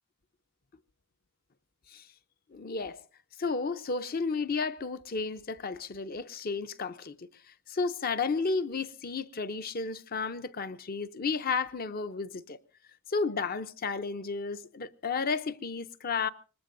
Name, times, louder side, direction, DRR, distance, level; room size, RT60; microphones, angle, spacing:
voice 1, 2.5-3.0 3.4-7.3 7.7-12.6 13.1-16.3, left 4 dB, 40° left, 0.7 m, -32 dB
24.5 x 20.5 x 2.7 m
head